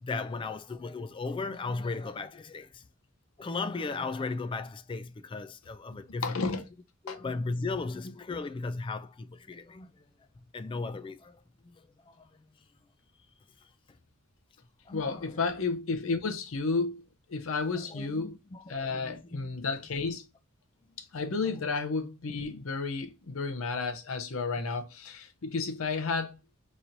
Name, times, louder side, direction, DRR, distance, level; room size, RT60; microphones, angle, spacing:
voice 1, 0.0-2.9 3.4-6.5 7.0-10.0 10.4-12.3 13.6-13.7 14.9-15.4 17.7-19.4 20.9-21.0 21.6-21.7, left 3 dB, 25° left, 0.3 m, -37 dB
voice 2, 6.2-6.6 7.1-7.2 14.9-18.3 18.7-20.2 21.0-26.4, left 4 dB, 70° left, 0.7 m, -32 dB
4.3 x 3.1 x 2.5 m
head